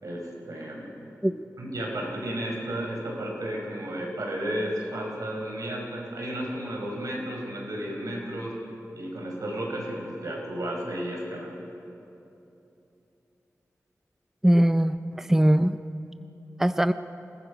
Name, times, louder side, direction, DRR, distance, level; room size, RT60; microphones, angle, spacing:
voice 1, 0.0-0.9 1.6-8.5 9.0-11.6, right 1 dB, 85° right, -1 dB, 4.8 m, -33 dB
voice 2, 14.4-15.8 16.6-16.9, right 1 dB, 5° right, 11 dB, 0.5 m, -21 dB
27.5 x 19.5 x 5.1 m, 2.9 s
wide cardioid pair, 90°, 6 cm